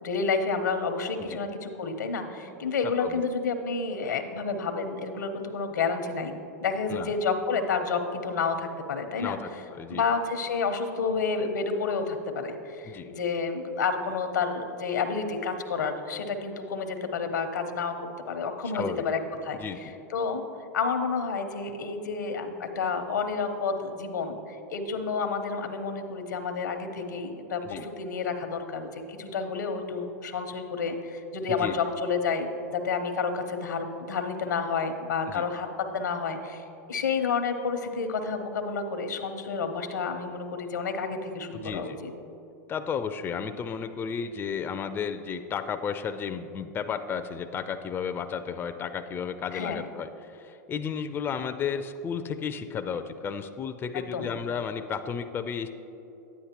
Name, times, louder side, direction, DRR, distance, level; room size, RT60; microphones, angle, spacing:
voice 1, 0.0-6.3 6.6-9.4 9.9-17.9 18.3-20.4 20.7-35.7 35.9-42.1 49.5-49.9 53.9-54.3, left 5 dB, 85° left, 7 dB, 0.8 m, -30 dB
voice 2, 9.2-10.0 12.8-13.1 18.7-19.0 19.5-19.9 27.6-27.9 31.5-31.8 35.3-35.5 41.5-42.0 42.7-55.7, left 6 dB, 20° left, 8 dB, 0.4 m, -33 dB
9.7 x 9.4 x 2.9 m, 2.9 s
hypercardioid pair, 105°, 9 cm